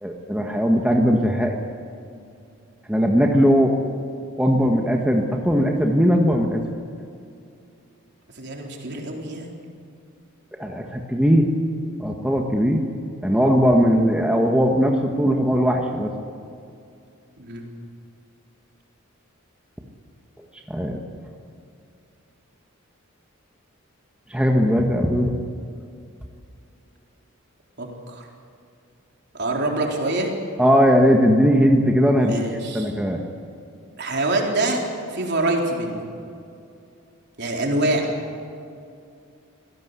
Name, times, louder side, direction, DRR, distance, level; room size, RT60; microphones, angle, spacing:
voice 1, 0.0-1.6 2.9-3.8 4.4-6.6 10.6-11.5 12.0-12.8 13.2-16.1 20.7-21.0 24.3-25.3 30.6-32.3 32.7-33.2, equal, 5° right, 1 dB, 1.5 m, -19 dB
voice 2, 8.3-9.6 17.4-17.6 27.8-28.3 29.3-30.3 32.2-32.9 34.0-34.8 35.1-36.0 37.4-38.1, right 2 dB, 50° right, 0 dB, 4.0 m, -25 dB
25.5 x 17.5 x 8.3 m, 2.5 s
head